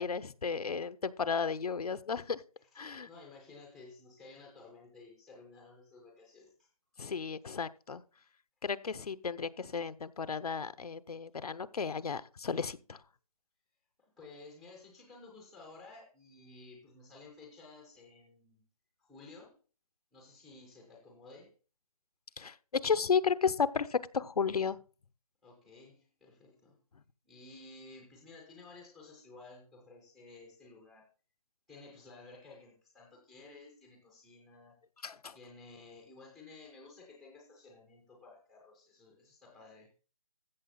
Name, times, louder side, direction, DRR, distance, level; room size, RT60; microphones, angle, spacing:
voice 1, 0.0-2.4 2.8-3.1 7.0-8.0 8.6-13.0 22.4-24.8 35.0-35.4, left 6 dB, 90° left, 0.9 m, -33 dB
voice 2, 2.8-6.7 14.0-18.6 19.0-19.6 20.1-21.5 25.4-26.8 27.2-31.1 31.7-34.8 35.3-39.9, left 3 dB, ahead, 0.4 m, -54 dB
14.5 x 6.9 x 4.0 m
hypercardioid pair, 170°, 19 cm